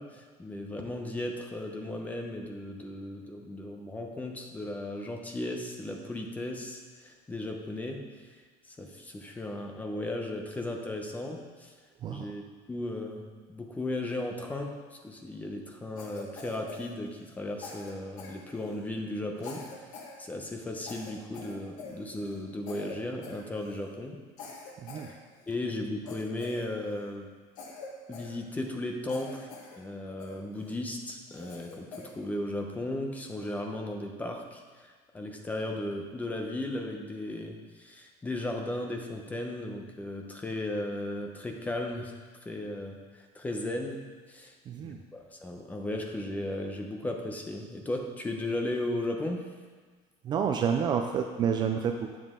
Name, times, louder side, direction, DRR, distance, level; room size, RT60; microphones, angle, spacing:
voice 1, 0.0-8.0 8.7-11.7 12.1-12.4 12.7-13.2 13.5-19.6 20.2-24.2 25.5-27.3 28.1-29.5 29.8-31.9 32.1-42.1 42.4-44.0 44.3-44.5 44.8-49.4, left 1 dB, 10° left, 2 dB, 0.9 m, -36 dB
Cough, 16.0-17.4 17.6-18.9 19.4-20.2 20.4-20.6 20.8-22.4 22.7-23.0 23.2-23.9 24.4-25.6 26.1-27.1 27.6-28.8 29.1-29.8 30.2-30.7 31.3-32.2, left 4 dB, 55° left, 1.6 m, -45 dB
voice 2, 44.7-45.0 50.2-52.2, right 7 dB, 30° right, 5 dB, 0.4 m, -29 dB
10.0 x 7.4 x 3.7 m, 1.5 s
cardioid pair, 160°, 15 cm